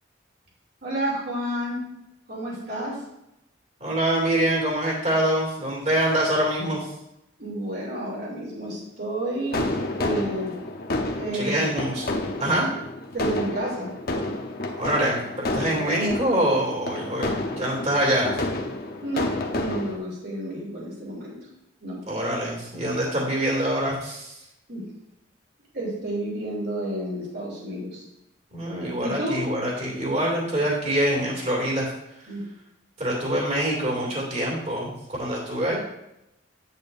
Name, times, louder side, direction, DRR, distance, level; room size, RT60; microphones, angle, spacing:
voice 1, 0.8-1.8 2.3-3.0 7.4-9.7 10.0-10.5 11.2-11.7 13.1-13.9 19.0-21.4 21.8-22.0 24.7-24.8 25.7-28.0 29.0-29.4 32.3-32.4, right 1 dB, 55° right, -3 dB, 2.9 m, -30 dB
voice 2, 3.8-6.9 11.3-12.0 12.4-12.7 14.8-18.3 22.1-24.5 28.5-31.9 32.2-32.3 33.0-35.8, right 1 dB, 35° right, -3 dB, 2.5 m, -25 dB
sound 1, 9.5-20.0, left 2 dB, 50° left, 0.8 m, -30 dB
8.8 x 8.3 x 2.6 m, 0.86 s
head